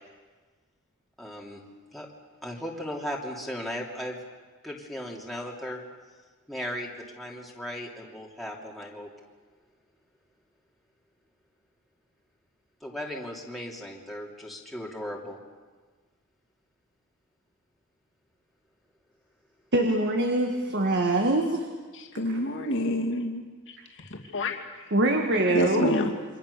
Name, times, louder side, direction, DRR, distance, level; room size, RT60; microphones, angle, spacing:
voice 1, 1.2-1.6 1.9-2.1 2.4-4.2 4.6-5.8 6.5-9.1 12.8-15.4, equal, ahead, -3 dB, 2.9 m, -36 dB
voice 2, 19.7-21.7 22.3-22.4 24.9-26.0, right 2 dB, 50° right, 4 dB, 1.9 m, -24 dB
voice 3, 21.9-23.4 24.1-24.6 25.5-26.1, left 1 dB, 55° left, 1 dB, 2.7 m, -27 dB
28.5 x 24.5 x 6.9 m, 1.4 s
head